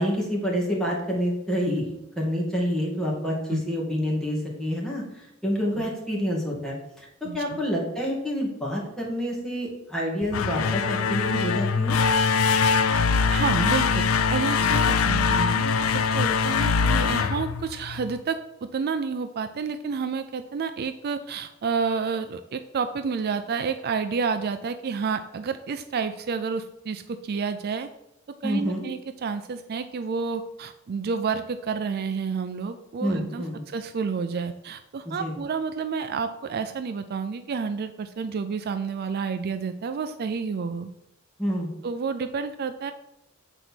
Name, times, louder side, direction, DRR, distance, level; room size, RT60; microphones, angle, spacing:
voice 1, 0.0-12.0 14.6-14.7 28.4-28.9 33.0-33.6 35.2-35.3 41.4-41.7, equal, 5° left, -4 dB, 2.2 m, -28 dB
voice 2, 7.2-7.6 13.3-27.9 28.4-40.9 41.8-42.9, right 5 dB, 50° right, 9 dB, 0.4 m, -30 dB
sound 1, 10.2-18.2, left 5 dB, 90° left, 0.5 m, -23 dB
8.1 x 4.0 x 6.0 m, 0.88 s
head